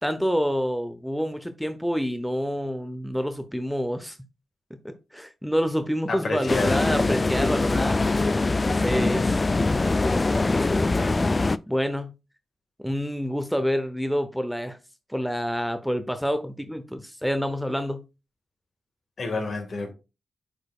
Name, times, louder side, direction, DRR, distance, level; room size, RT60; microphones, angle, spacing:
voice 1, 0.0-4.2 4.8-8.0 8.7-9.3 10.1-10.9 11.7-12.1 12.8-14.8 15.1-18.0, equal, ahead, 0.7 m, -28 dB
voice 2, 6.1-6.8 8.6-8.9 19.2-19.9, left 3 dB, 55° left, 1.8 m, -29 dB
sound 1, 6.5-11.6, left 3 dB, 30° left, 0.3 m, -23 dB
8.5 x 4.9 x 2.4 m
cardioid pair, 75°, 0 cm